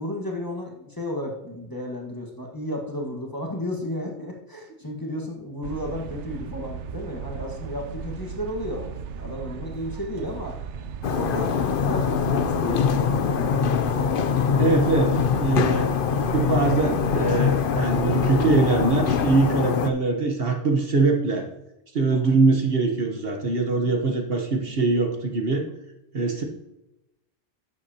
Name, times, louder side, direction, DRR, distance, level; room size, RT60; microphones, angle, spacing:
voice 1, 0.0-8.9 9.1-10.6 11.1-13.9 22.1-22.4, left 1 dB, 20° left, 0 dB, 1.5 m, -33 dB
sound 1, 5.6-19.5, right 6 dB, 75° right, 0.9 m, -36 dB
sound 2, 11.0-19.9, left 7 dB, 55° left, 0.7 m, -23 dB
voice 2, 14.6-15.9 16.3-21.5 21.9-25.7 26.1-26.4, right 3 dB, 55° right, 3 dB, 1.3 m, -22 dB
11.5 x 7.9 x 2.9 m, 0.91 s
omnidirectional pair, 1.2 m